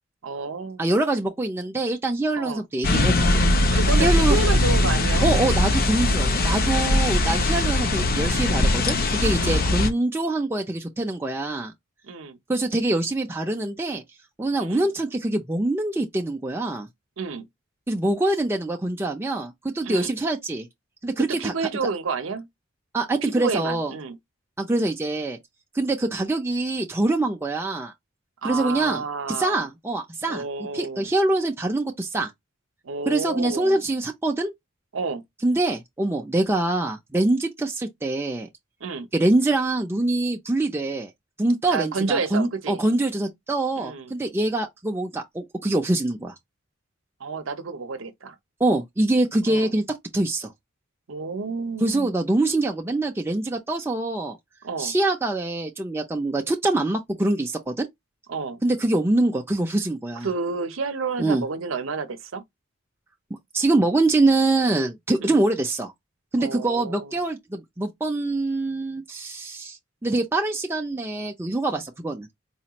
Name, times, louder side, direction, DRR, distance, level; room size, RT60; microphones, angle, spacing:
voice 1, 0.2-0.9 2.4-2.6 3.7-5.3 9.4-9.6 12.0-12.4 14.6-14.9 17.2-17.4 19.8-20.2 21.2-22.5 23.2-24.2 28.4-29.7 30.3-31.1 32.8-33.8 34.9-35.2 38.8-39.1 41.7-42.8 43.8-44.1 47.2-48.4 49.5-49.7 51.1-52.1 54.6-54.9 58.3-58.6 60.2-62.4 65.2-65.4 66.4-67.1, right 4 dB, 70° right, 0.7 m, -30 dB
voice 2, 0.8-3.5 4.0-4.4 5.2-11.7 12.5-14.0 14.4-16.9 17.9-20.7 21.0-21.5 22.9-23.9 24.6-25.4 25.7-27.9 28.4-32.3 33.1-34.5 35.4-38.5 39.1-41.1 41.4-46.3 48.6-49.8 50.1-50.5 51.8-54.4 54.8-57.9 58.6-60.3 61.2-61.4 63.5-65.9 66.3-72.3, right 2 dB, 10° right, 0.4 m, -24 dB
sound 1, 2.8-9.9, left 1 dB, 50° left, 0.6 m, -21 dB
4.2 x 2.3 x 2.9 m
head